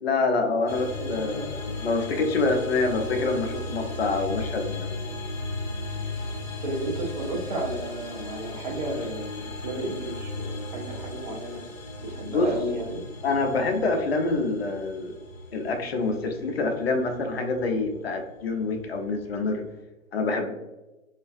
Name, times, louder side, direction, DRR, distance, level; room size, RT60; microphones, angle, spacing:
voice 1, 0.0-5.0 12.3-12.5 13.2-15.1 15.5-19.6 20.1-20.5, left 3 dB, 50° left, 4 dB, 0.4 m, -26 dB
sound 1, 0.7-19.8, left 2 dB, 65° left, 1.0 m, -36 dB
voice 2, 0.9-1.5 6.6-11.6 12.0-13.0, right 1 dB, 35° right, -2 dB, 0.6 m, -33 dB
2.5 x 2.3 x 2.3 m, 1.0 s
figure-of-eight pair, 130°, 42 cm